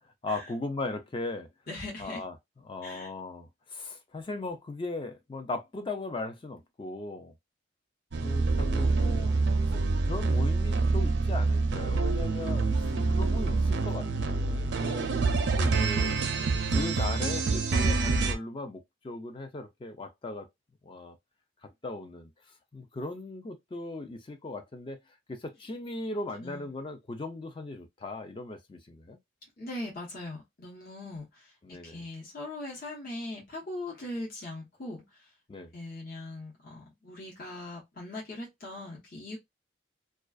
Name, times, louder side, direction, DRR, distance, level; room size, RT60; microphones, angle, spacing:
voice 1, 0.0-1.5 2.0-2.3 2.6-7.4 8.2-9.3 9.7-15.1 15.6-16.2 16.7-20.5 20.8-21.2 21.6-22.3 22.7-25.0 25.3-29.2 31.6-32.0 35.5-35.7, left 2 dB, 25° left, 0.4 m, -38 dB
voice 2, 1.7-2.2 2.8-3.1 12.9-13.4 26.4-26.7 29.6-35.3 35.7-39.4, left 1 dB, 50° left, 1.0 m, -40 dB
sound 1, 8.1-18.3, right 3 dB, 70° right, 0.5 m, -26 dB
2.3 x 2.3 x 2.3 m
head